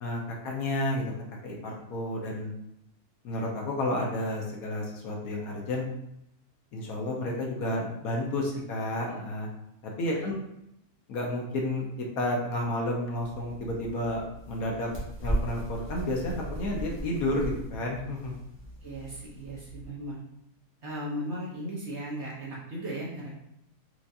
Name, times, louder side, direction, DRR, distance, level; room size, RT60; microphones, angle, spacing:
voice 1, 0.0-1.1 1.4-2.5 3.2-5.9 6.7-9.5 9.8-10.4 11.1-14.2 14.5-14.9 15.2-18.4, left 1 dB, 70° left, -1 dB, 1.1 m, -31 dB
sound 1, 13.2-19.9, right 1 dB, 10° left, 0.9 m, -37 dB
voice 2, 18.8-20.2 20.8-23.4, right 1 dB, 55° right, -5 dB, 0.9 m, -37 dB
4.5 x 2.4 x 2.7 m, 0.80 s
omnidirectional pair, 1.7 m